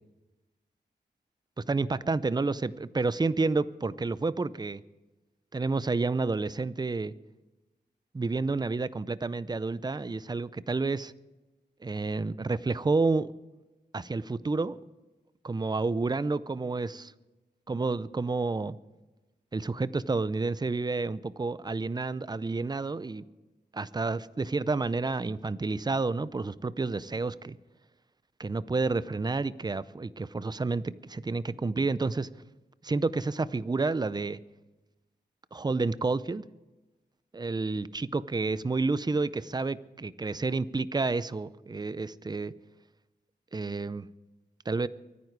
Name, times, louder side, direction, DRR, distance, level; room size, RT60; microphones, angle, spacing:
voice 1, 1.7-4.8 5.5-7.1 8.1-11.1 11.8-13.3 13.9-14.8 15.4-17.1 17.7-18.8 19.5-23.3 23.7-27.6 28.4-32.3 32.8-34.4 35.5-36.4 37.3-42.5 43.5-44.1 44.7-44.9, right 3 dB, 25° right, 0.6 m, -30 dB
24.0 x 9.5 x 4.7 m
wide cardioid pair, 85°, 18 cm